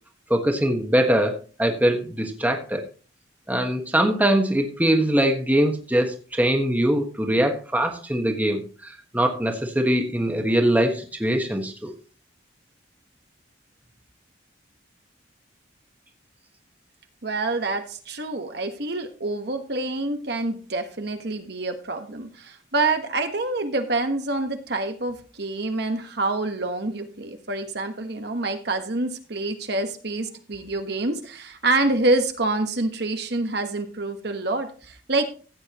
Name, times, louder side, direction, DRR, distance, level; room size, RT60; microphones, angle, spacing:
voice 1, 0.3-2.8 3.5-11.9, right 1 dB, 10° right, 3 dB, 1.3 m, -22 dB
voice 2, 17.2-35.2, right 2 dB, 55° right, 6 dB, 1.3 m, -27 dB
15.0 x 8.9 x 3.0 m, 0.37 s
head